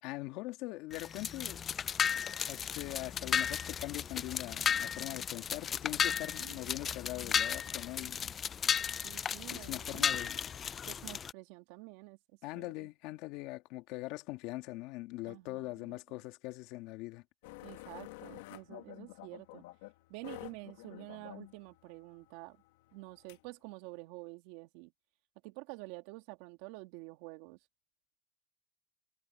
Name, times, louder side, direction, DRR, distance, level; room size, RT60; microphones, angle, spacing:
voice 1, 0.0-1.6 2.5-8.3 9.5-10.5 12.4-17.2, left 20 dB, 60° left, 1.9 m, -42 dB
sound 1, 0.9-11.3, left 7 dB, 30° left, 0.4 m, -34 dB
voice 2, 9.0-10.1 10.9-12.2 12.6-12.9 15.2-16.0 17.6-19.6 20.1-22.6 22.9-24.9 25.4-27.6, right 23 dB, 70° right, 2.7 m, -49 dB
sound 2, 17.4-23.5, left 20 dB, 75° left, 1.3 m, -50 dB
supercardioid pair, 120°, 0 cm